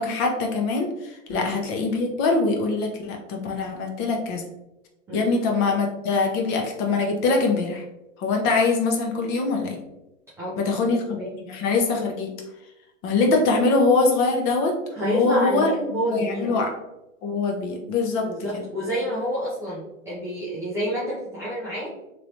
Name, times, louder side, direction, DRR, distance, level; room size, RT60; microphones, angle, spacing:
voice 1, 0.0-4.4 5.1-7.8 8.2-9.8 10.6-12.3 13.0-14.7 15.0-16.7 17.2-18.6, left 3 dB, 30° left, 2 dB, 0.7 m, -23 dB
voice 2, 10.4-11.3 14.9-16.6 18.2-22.1, equal, 5° right, -9 dB, 0.3 m, -29 dB
3.1 x 3.0 x 2.6 m, 0.93 s
hypercardioid pair, 125°, 39 cm